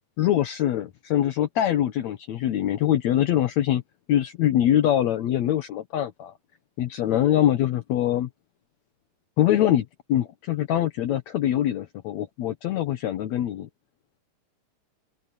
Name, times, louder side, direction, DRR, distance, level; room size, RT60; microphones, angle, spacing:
voice 1, 0.2-3.8 4.1-6.3 6.8-8.3 9.4-13.7, left 12 dB, 70° left, 2.2 m, -23 dB
open air
omnidirectional pair, 3.6 m